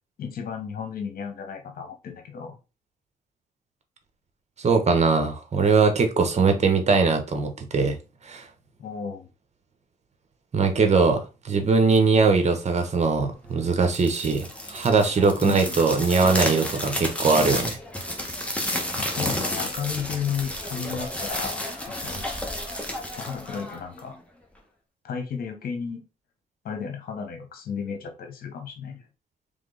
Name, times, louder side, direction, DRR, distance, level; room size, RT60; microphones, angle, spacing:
voice 1, 0.2-2.6 8.8-9.3 15.4-15.7 19.0-22.3 23.2-24.2 25.0-26.0 26.6-29.0, left 7 dB, 70° left, 1.3 m, -33 dB
voice 2, 4.6-8.0 8.2-8.5 10.5-17.8, right 4 dB, 45° right, 1.2 m, -21 dB
sound 1, 13.8-24.1, left 1 dB, 10° left, 1.3 m, -31 dB
3.7 x 3.5 x 3.9 m
cardioid pair, 70°, 16 cm